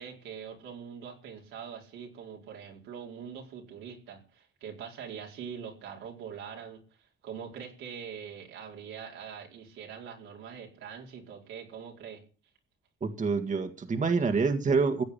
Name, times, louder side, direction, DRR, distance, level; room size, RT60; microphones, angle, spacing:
voice 1, 0.0-12.2, right 7 dB, 90° right, 0 dB, 4.7 m, -43 dB
voice 2, 13.0-15.0, right 4 dB, 40° right, 6 dB, 1.9 m, -27 dB
16.0 x 8.6 x 8.6 m, 0.40 s
cardioid pair, 90°, 20 cm